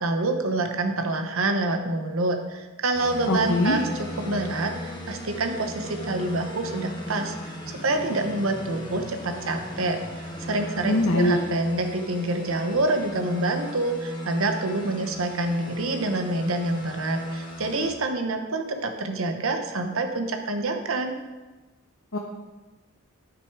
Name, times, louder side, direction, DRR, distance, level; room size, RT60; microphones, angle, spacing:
voice 1, 0.0-3.8 4.2-7.3 7.8-21.1, right 2 dB, 70° right, 5 dB, 0.9 m, -27 dB
sound 1, 2.9-17.9, equal, 20° left, 1.2 m, -37 dB
voice 2, 3.3-3.8 10.8-11.4 22.1-22.2, left 1 dB, 75° left, -1 dB, 1.0 m, -21 dB
9.9 x 6.3 x 4.6 m, 1.2 s
head